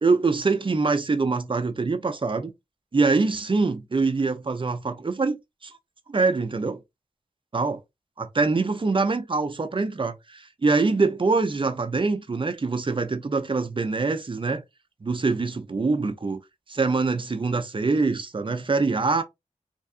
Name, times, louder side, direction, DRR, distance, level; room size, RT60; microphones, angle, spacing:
voice 1, 0.0-2.5 2.9-5.4 5.6-5.8 6.1-6.8 7.5-7.8 8.2-14.6 15.0-16.4 16.7-19.2, right 3 dB, 40° right, 0.6 m, -24 dB
3.3 x 2.5 x 2.5 m
cardioid pair, 50°, 13 cm